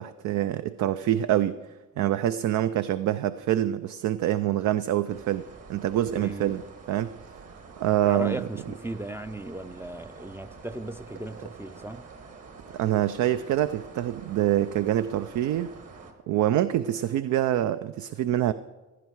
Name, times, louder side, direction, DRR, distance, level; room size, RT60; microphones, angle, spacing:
voice 1, 0.0-1.6 2.0-6.6 6.9-7.1 7.8-8.5 12.7-15.7 16.3-18.5, right 12 dB, 70° right, 12 dB, 0.5 m, -25 dB
sound 1, 5.1-16.1, right 4 dB, 55° right, 2.0 m, -47 dB
voice 2, 6.1-6.5 8.0-12.1, right 1 dB, 10° right, 6 dB, 0.4 m, -36 dB
16.0 x 11.5 x 4.7 m, 1.2 s
cardioid pair, 90°, 30 cm